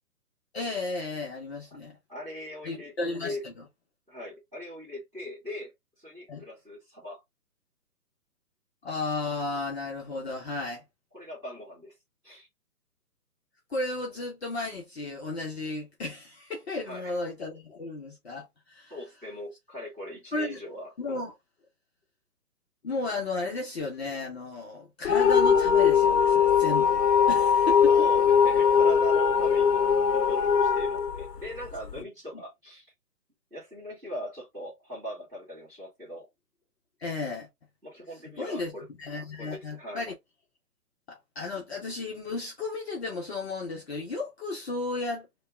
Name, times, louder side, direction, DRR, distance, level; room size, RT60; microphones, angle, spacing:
voice 1, 0.5-2.0 2.6-3.5 6.3-6.4 8.8-10.8 13.7-18.9 20.3-20.6 21.0-21.3 22.8-27.0 27.3-27.9 32.0-32.1 32.3-32.4 37.0-37.5 38.4-38.7 39.0-40.1 41.1-45.3, left 3 dB, 40° left, 0.9 m, -34 dB
voice 2, 2.1-2.9 3.2-3.5 4.1-5.7 6.0-7.2 11.1-11.9 12.2-12.5 16.8-17.2 18.9-21.2 27.9-29.8 30.1-32.9 33.5-36.3 37.8-38.8 39.4-40.1, equal, 5° right, 2.1 m, -40 dB
sound 1, 25.0-32.0, left 7 dB, 80° left, 0.7 m, -21 dB
3.5 x 2.3 x 3.4 m
hypercardioid pair, 170°, 48 cm